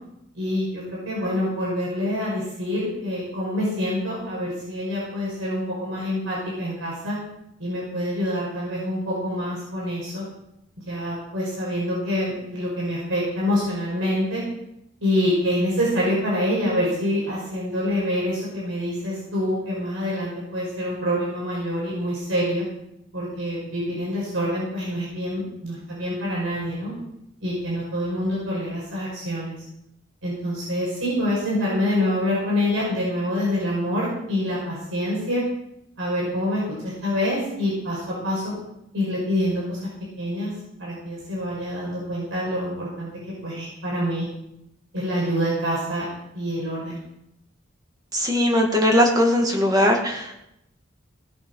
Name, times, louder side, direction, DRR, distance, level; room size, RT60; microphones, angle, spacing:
voice 1, 0.3-7.2 7.6-10.2 10.9-14.4 15.0-22.6 23.1-26.9 27.4-29.6 30.2-35.4 36.0-38.5 38.9-39.8 40.2-40.5 40.8-43.1 43.4-44.3 44.9-46.1 46.3-47.0, equal, 90° right, -5 dB, 5.7 m, -26 dB
voice 2, 48.1-50.3, left 1 dB, 20° right, 1 dB, 2.1 m, -19 dB
18.5 x 7.1 x 5.6 m, 0.82 s
head